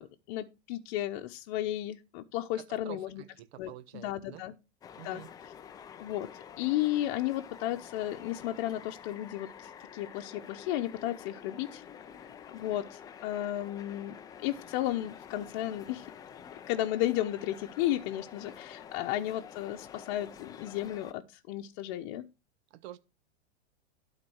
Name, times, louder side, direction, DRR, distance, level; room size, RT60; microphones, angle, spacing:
voice 1, 0.0-3.2 3.6-4.5 5.0-5.2 6.0-6.3 6.6-11.8 12.1-16.1 16.7-22.2, left 13 dB, 45° left, 0.9 m, -34 dB
voice 2, 2.8-4.4 5.0-5.3 22.7-23.0, right 13 dB, 60° right, 1.0 m, -47 dB
sound 1, 4.8-21.1, left 8 dB, 10° left, 0.4 m, -49 dB
12.0 x 4.1 x 6.2 m
hypercardioid pair, 135°, 35 cm